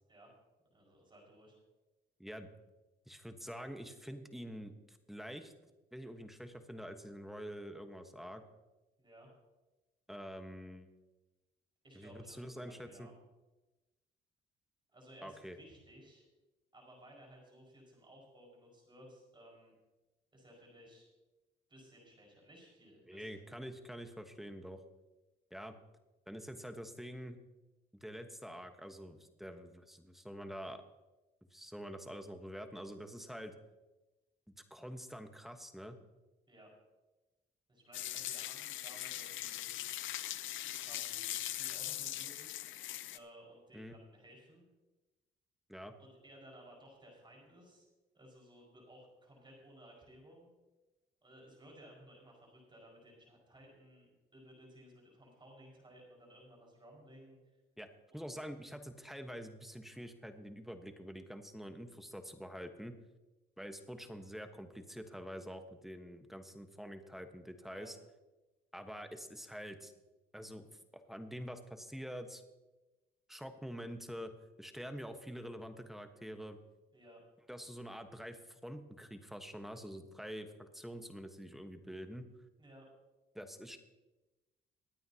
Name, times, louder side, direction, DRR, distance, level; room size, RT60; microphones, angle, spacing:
voice 1, 0.7-1.6 9.0-9.3 11.8-13.1 14.9-16.2 16.7-19.7 20.3-21.1 21.7-23.5 33.2-33.3 36.5-36.7 37.7-39.7 40.4-42.5 43.1-44.6 46.0-47.9 48.1-50.5 51.2-57.4 58.2-58.4 67.7-67.9 76.9-77.2 82.6-82.9, right 1 dB, 25° right, -1 dB, 5.3 m, -58 dB
voice 2, 2.2-2.5 3.1-5.5 5.9-8.4 10.1-10.9 11.9-13.1 15.2-15.6 23.1-24.8 25.5-25.8 26.3-27.4 27.9-30.8 31.5-33.5 34.5-36.0 43.7-43.9 45.7-45.9 57.8-57.9 58.1-63.0 63.6-68.0 68.7-69.9 70.3-70.7 71.1-72.4 73.3-74.3 74.6-76.6 77.5-82.3 83.3-83.8, equal, ahead, 6 dB, 1.2 m, -46 dB
sound 1, 37.9-43.2, left 13 dB, 80° left, 0.6 m, -41 dB
22.5 x 9.3 x 2.9 m, 1.1 s
cardioid pair, 90°, 20 cm